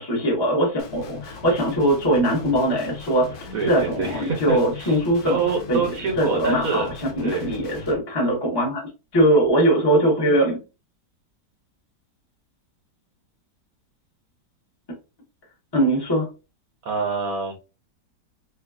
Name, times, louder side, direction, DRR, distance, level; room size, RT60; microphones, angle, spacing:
voice 1, 0.0-5.4 5.7-5.8 6.2-10.6 15.7-16.3, right 1 dB, 15° left, 1.0 m, -21 dB
Guitar, 0.8-8.0, left 5 dB, 65° left, 1.2 m, -39 dB
voice 2, 3.5-6.9 7.2-7.5 16.9-17.7, right 4 dB, 60° right, 1.0 m, -26 dB
3.2 x 3.1 x 2.4 m
omnidirectional pair, 1.9 m